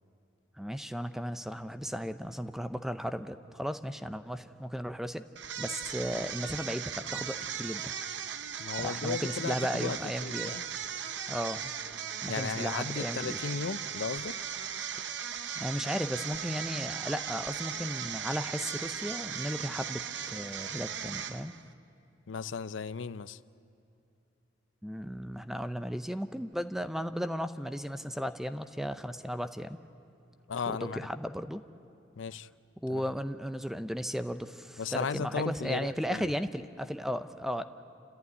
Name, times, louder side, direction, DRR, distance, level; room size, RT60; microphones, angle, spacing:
voice 1, 0.6-5.2 5.6-7.9 8.8-10.6 11.3-11.7 12.2-13.4 15.6-21.5 24.8-29.8 30.7-31.6 32.8-37.6, equal, ahead, 10 dB, 0.6 m, -35 dB
sound 1, 5.4-21.7, right 8 dB, 65° right, 0.8 m, -38 dB
voice 2, 8.6-10.6 12.3-14.4 22.3-23.4 30.5-31.0 32.2-32.5 32.9-33.0 34.8-36.3, left 5 dB, 85° left, 15 dB, 0.5 m, -35 dB
29.0 x 14.0 x 9.4 m, 2.8 s
head